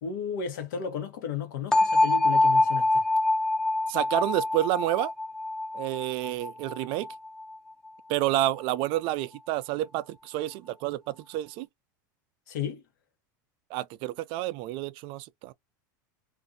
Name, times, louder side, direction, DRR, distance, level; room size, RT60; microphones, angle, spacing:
voice 1, 0.0-3.0 12.5-12.8, left 7 dB, 75° left, 1.2 m, -33 dB
sound 1, 1.7-7.6, left 2 dB, 5° left, 0.6 m, -25 dB
voice 2, 3.9-5.1 5.7-7.1 8.1-11.7 13.7-15.5, right 15 dB, 55° right, 0.4 m, -29 dB
2.6 x 2.5 x 2.6 m
hypercardioid pair, 110°, 10 cm